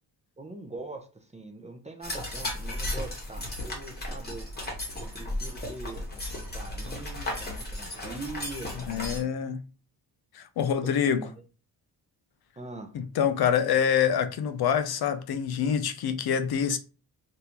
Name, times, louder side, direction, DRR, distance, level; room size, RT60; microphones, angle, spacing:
voice 1, 0.4-4.4 5.0-9.3 10.8-11.3 12.6-12.9, right 2 dB, 15° right, 0.4 m, -42 dB
sound 1, 2.0-9.2, left 1 dB, 25° left, 1.0 m, -35 dB
voice 2, 8.9-9.7 10.3-11.2 12.9-16.8, left 8 dB, 65° left, 0.5 m, -26 dB
3.5 x 2.6 x 2.8 m
wide cardioid pair, 165°, 41 cm